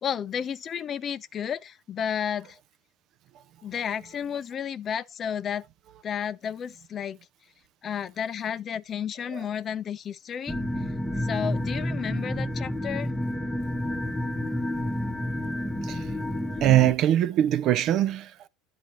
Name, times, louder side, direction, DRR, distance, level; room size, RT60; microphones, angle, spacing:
voice 1, 0.0-2.6 3.6-5.6 6.0-7.2 7.8-10.6 11.2-13.1, left 8 dB, 35° left, 0.4 m, -32 dB
sound 1, 10.5-16.9, left 1 dB, 5° left, 1.0 m, -30 dB
voice 2, 16.6-18.5, right 12 dB, 50° right, 0.5 m, -22 dB
10.5 x 4.0 x 3.0 m
hypercardioid pair, 90°, 0 cm